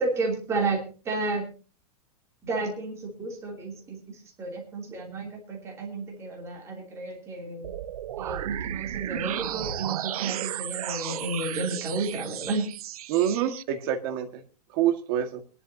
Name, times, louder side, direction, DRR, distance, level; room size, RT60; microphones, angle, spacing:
voice 1, 0.0-1.5 2.4-7.7 8.2-12.7, right 3 dB, 15° right, 1 dB, 3.0 m, -32 dB
sound 1, 7.6-13.6, right 12 dB, 65° right, 0.7 m, -34 dB
voice 2, 13.1-14.4 14.7-15.4, right 10 dB, 35° right, 5 dB, 1.9 m, -26 dB
23.5 x 11.5 x 2.8 m, 0.35 s
supercardioid pair, 175°, 20 cm